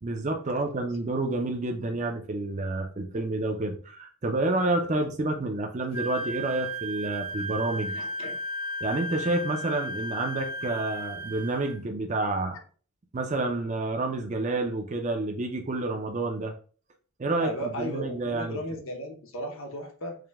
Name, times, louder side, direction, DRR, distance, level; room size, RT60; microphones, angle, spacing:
voice 1, 0.0-7.9 8.8-12.6 13.1-16.5 17.2-18.6, right 2 dB, 35° right, 3 dB, 0.4 m, -29 dB
Wind instrument woodwind instrument, 5.9-11.7, equal, 80° right, 1.5 m, -35 dB
voice 2, 7.9-8.4 17.4-20.2, equal, 65° left, 2 dB, 0.8 m, -36 dB
4.9 x 2.1 x 3.4 m, 0.41 s
head